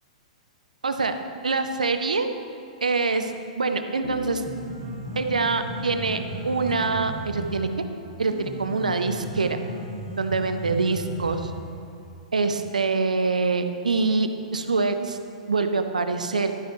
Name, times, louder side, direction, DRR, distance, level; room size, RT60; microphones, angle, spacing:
voice 1, 0.8-1.1 1.4-2.3 2.8-3.3 3.6-4.4 5.2-6.2 6.4-7.7 8.2-9.6 10.2-11.5 12.3-15.2 15.5-16.5, right 4 dB, 90° right, 8 dB, 0.7 m, -25 dB
Bass guitar, 4.0-7.6, left 2 dB, 60° left, 0.8 m, -44 dB
Piano, 4.1-12.1, equal, 80° left, 2.3 m, -36 dB
12.0 x 8.4 x 3.2 m, 2.8 s
hypercardioid pair, 115°, 4 cm